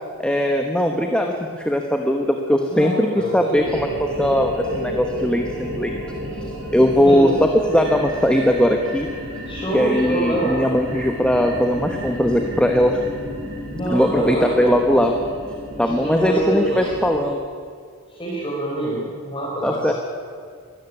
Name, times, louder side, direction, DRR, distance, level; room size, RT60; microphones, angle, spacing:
voice 1, 0.2-6.0 6.7-9.1 9.7-13.0 13.9-15.1 15.8-17.4 19.6-19.9, equal, 5° left, 3 dB, 1.2 m, -19 dB
voice 2, 2.7-3.7 6.9-7.4 9.4-10.6 13.7-14.7 15.7-16.9 18.1-19.9, right 1 dB, 25° left, -6 dB, 4.9 m, -25 dB
sound 1, 3.6-17.2, equal, 90° right, 6.7 m, -32 dB
22.0 x 14.0 x 9.9 m, 2.1 s
head